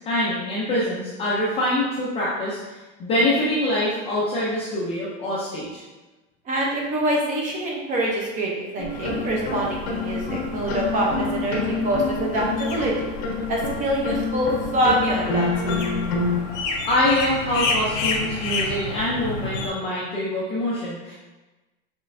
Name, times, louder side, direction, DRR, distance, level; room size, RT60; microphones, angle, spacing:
voice 1, 0.0-2.7 3.0-5.8 16.9-21.1, left 1 dB, 15° left, -7 dB, 0.4 m, -24 dB
voice 2, 6.5-13.1 13.5-15.8, right 1 dB, 20° right, -2 dB, 0.6 m, -25 dB
sound 1, 8.8-16.4, left 3 dB, 65° left, 1.2 m, -27 dB
sound 2, 8.9-19.7, left 3 dB, 90° left, 1.1 m, -31 dB
6.2 x 3.1 x 2.5 m, 1.1 s
supercardioid pair, 175°, 36 cm